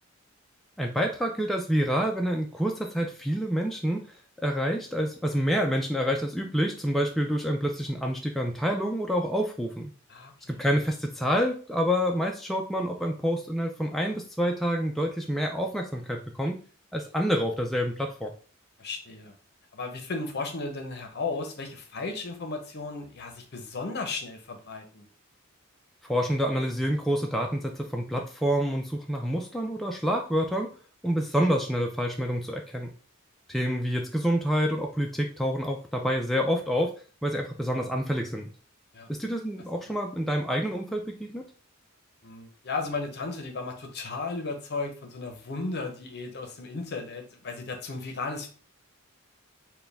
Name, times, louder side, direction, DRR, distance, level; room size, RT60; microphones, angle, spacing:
voice 1, 0.8-4.2 4.4-9.9 10.5-16.6 16.9-18.3 26.1-30.7 31.0-32.9 33.5-36.9 37.2-38.5 39.1-41.5, equal, ahead, 0 dB, 0.3 m, -27 dB
voice 2, 10.1-10.6 18.8-19.3 19.7-25.1 38.9-39.1 39.9-40.0 42.2-48.5, left 3 dB, 50° left, 5 dB, 0.8 m, -35 dB
4.5 x 2.2 x 3.4 m, 0.40 s
head